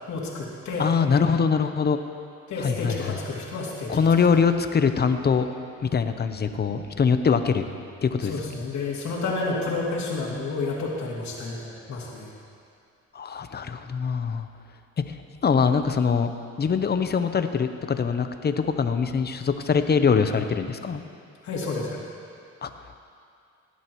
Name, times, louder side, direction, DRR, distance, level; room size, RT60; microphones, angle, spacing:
voice 1, 0.1-0.9 2.5-4.1 8.2-12.3 21.4-22.0, left 3 dB, 65° left, -4 dB, 2.8 m, -30 dB
voice 2, 0.8-2.0 2.6-3.2 3.9-5.5 5.8-7.6 8.0-8.3 13.1-14.5 15.1-15.2 15.4-16.3 16.6-21.0 22.6-22.7, left 6 dB, 35° left, 9 dB, 0.7 m, -23 dB
17.5 x 11.5 x 3.1 m, 2.4 s
cardioid pair, 90°, 30 cm